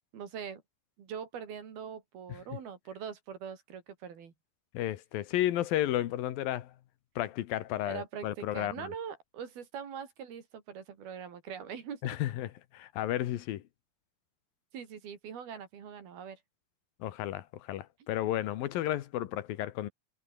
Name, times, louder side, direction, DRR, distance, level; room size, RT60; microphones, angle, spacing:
voice 1, 0.1-0.6 1.0-4.3 7.9-12.0 14.7-16.4, right 7 dB, 80° right, 5.3 m, -42 dB
voice 2, 4.7-6.7 7.2-8.9 12.0-13.6 17.0-19.9, left 13 dB, 75° left, 2.9 m, -33 dB
omnidirectional pair, 4.3 m